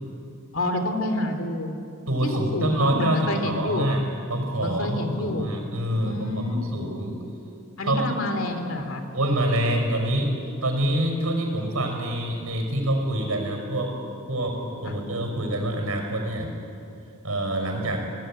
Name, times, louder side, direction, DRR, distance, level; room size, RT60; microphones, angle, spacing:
voice 1, 0.5-1.7 2.2-3.9 4.6-5.5 6.0-6.8 7.8-9.0 14.8-14.9, left 1 dB, 65° left, 6 dB, 2.9 m, -28 dB
voice 2, 2.1-4.0 4.3-7.2 7.8-8.0 9.1-10.3 10.6-13.9 14.3-16.5 17.2-18.0, right 1 dB, 85° right, 3 dB, 5.2 m, -26 dB
24.5 x 18.0 x 8.9 m, 2.7 s
head